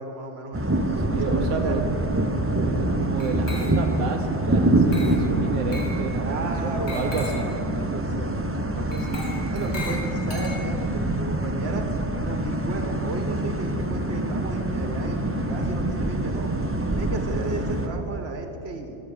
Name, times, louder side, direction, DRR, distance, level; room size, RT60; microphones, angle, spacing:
voice 1, 0.0-2.0 6.2-9.2 9.5-11.9 12.2-16.5 16.9-19.0, right 3 dB, 60° right, 5 dB, 1.6 m, -34 dB
sound 1, 0.5-17.9, right 1 dB, 15° right, 0.6 m, -25 dB
voice 2, 1.1-1.8 2.7-6.4 6.6-7.5, right 5 dB, 85° right, 4 dB, 1.1 m, -31 dB
Glass, 3.2-4.0 4.9-5.3 5.7-6.0 6.9-7.5 8.9-10.9, left 2 dB, 65° left, 2.3 m, -38 dB
14.0 x 7.0 x 8.7 m, 2.9 s
omnidirectional pair, 1.2 m